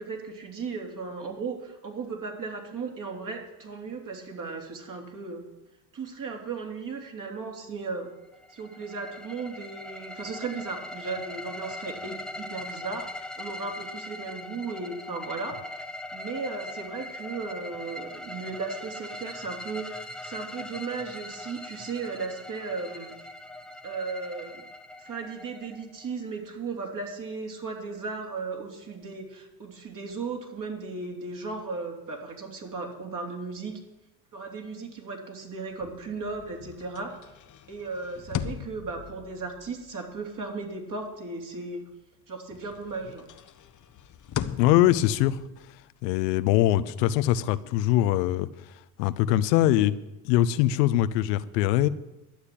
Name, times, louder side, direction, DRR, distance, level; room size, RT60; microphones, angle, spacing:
voice 1, 0.0-5.5 5.9-8.1 8.5-15.6 16.1-23.2 23.8-24.6 25.0-33.7 34.3-37.2 37.7-41.9 42.3-43.3, right 4 dB, 40° right, 2 dB, 3.4 m, -36 dB
sound 1, 8.3-26.2, left 1 dB, ahead, 0.8 m, -41 dB
sound 2, 35.7-42.2 42.5-47.9, left 9 dB, 40° left, 1.0 m, -41 dB
voice 2, 44.6-45.4 45.7-48.7 49.0-50.0 50.2-51.9, left 13 dB, 75° left, 14 dB, 0.8 m, -23 dB
12.0 x 8.1 x 8.7 m, 0.96 s
hypercardioid pair, 75°, 49 cm